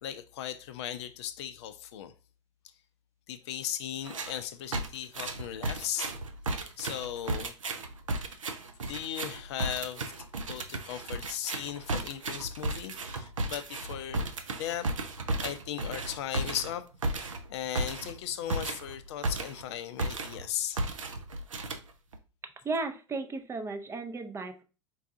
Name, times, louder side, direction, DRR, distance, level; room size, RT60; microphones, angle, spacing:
voice 1, 0.0-2.1 3.3-6.1 6.8-7.5 8.9-10.0 10.5-14.3 14.6-14.9 15.4-16.8 17.1-20.8, left 11 dB, 60° left, 0.4 m, -37 dB
sound 1, 4.0-4.4 4.7-19.7 20.0-20.5 20.8-22.2, right 2 dB, 85° right, 0.5 m, -34 dB
voice 2, 22.6-24.6, right 3 dB, 15° right, 0.4 m, -35 dB
4.6 x 2.3 x 2.5 m
figure-of-eight pair, 85°, 16 cm